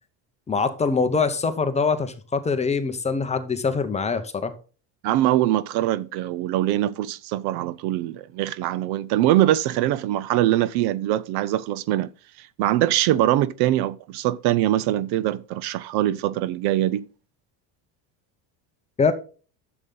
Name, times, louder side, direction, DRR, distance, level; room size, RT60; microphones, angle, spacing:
voice 1, 0.5-4.5 19.0-19.1, left 4 dB, 15° left, 0.7 m, -23 dB
voice 2, 5.0-12.1 12.4-17.1, right 14 dB, 55° right, 0.6 m, -23 dB
11.0 x 7.0 x 3.8 m
cardioid pair, 155°, 46 cm